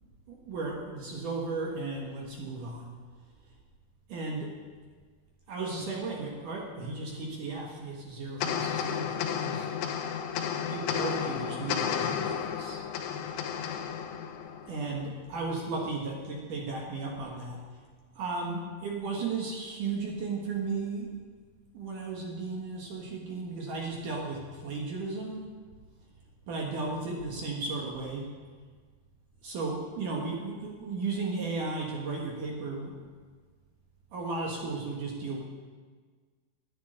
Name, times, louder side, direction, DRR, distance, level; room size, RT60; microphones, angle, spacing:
voice 1, 0.3-3.0 4.1-4.5 5.5-9.7 10.7-12.8 14.7-17.8 18.2-21.1 21.7-25.5 26.5-28.3 29.4-32.9 34.1-35.4, right 3 dB, 60° right, -1 dB, 2.3 m, -35 dB
sound 1, 8.4-15.0, left 8 dB, 90° left, 3.5 m, -32 dB
11.5 x 8.4 x 9.9 m, 1.5 s
omnidirectional pair, 5.5 m